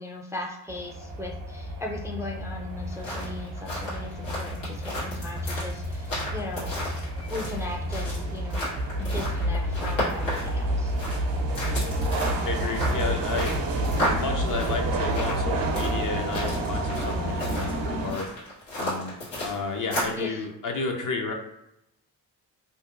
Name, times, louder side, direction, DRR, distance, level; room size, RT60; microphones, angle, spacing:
voice 1, 0.0-6.7 7.3-8.7 9.0-10.9 20.2-20.4, left 1 dB, 5° right, 0 dB, 0.4 m, -37 dB
sound 1, 0.7-18.1, right 1 dB, 75° right, 0.6 m, -29 dB
sound 2, 2.8-20.2, equal, 85° left, 1.4 m, -34 dB
voice 2, 12.5-13.5 14.0-18.3 18.8-19.2 19.4-21.3, left 4 dB, 50° left, 2 dB, 0.7 m, -32 dB
2.7 x 2.2 x 2.4 m, 0.85 s
supercardioid pair, 45°, 43 cm